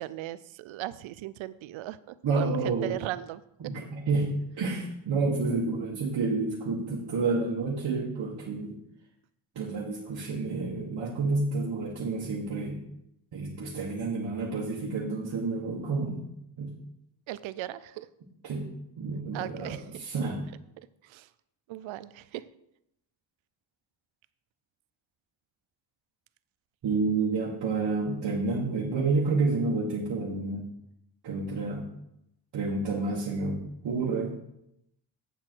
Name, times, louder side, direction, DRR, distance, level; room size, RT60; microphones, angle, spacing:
voice 1, 0.0-3.4 17.3-18.1 19.3-20.0 21.0-21.3 21.7-22.4, right 14 dB, 80° right, 16 dB, 0.6 m, -37 dB
voice 2, 2.2-3.0 3.6-8.8 9.6-12.8 13.3-16.3 16.6-16.7 18.4-18.7 19.0-20.4 26.8-30.7 31.2-31.9 32.5-34.4, right 3 dB, 55° right, -3 dB, 1.7 m, -29 dB
8.2 x 7.6 x 4.6 m, 0.81 s
cardioid pair, 110°, 47 cm